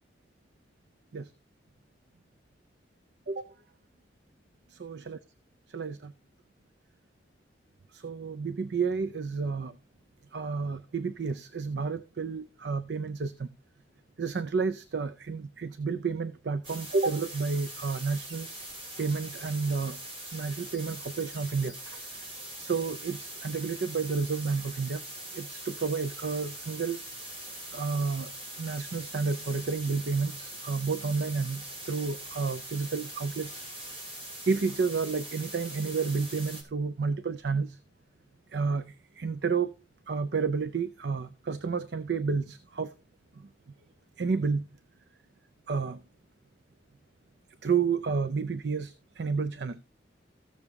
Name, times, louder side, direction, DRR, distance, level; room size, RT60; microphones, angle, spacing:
voice 1, 4.7-5.2 5.7-6.1 7.9-9.8 10.3-13.5 14.2-18.5 19.0-20.0 20.3-22.0 22.6-25.0 25.3-27.0 27.7-28.3 28.6-33.6 34.4-37.8 38.5-39.7 40.1-42.9 43.4-43.5 44.2-44.7 45.7-46.0 47.6-49.8, right 5 dB, 70° right, 0.5 m, -31 dB
sound 1, 16.6-36.6, right 1 dB, 30° right, 3.1 m, -42 dB
14.5 x 6.9 x 3.5 m
head